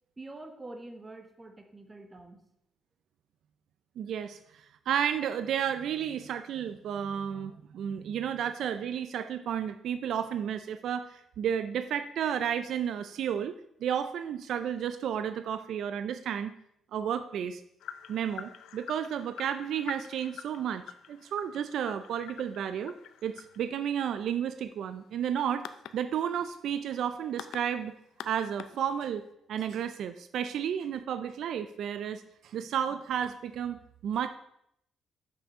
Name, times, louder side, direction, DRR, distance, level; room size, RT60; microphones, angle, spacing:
voice 1, 0.2-2.4, right 2 dB, 15° right, 5 dB, 1.1 m, -46 dB
voice 2, 4.0-13.5 13.8-16.5 16.9-17.6 18.1-20.8 21.1-23.0 23.2-25.7 25.9-27.9 28.2-29.2 29.5-34.3, right 9 dB, 70° right, 11 dB, 0.4 m, -32 dB
sound 1, 17.8-29.3, left 9 dB, 85° left, 0.5 m, -47 dB
7.2 x 6.1 x 5.3 m, 0.75 s
cardioid pair, 135°, 0 cm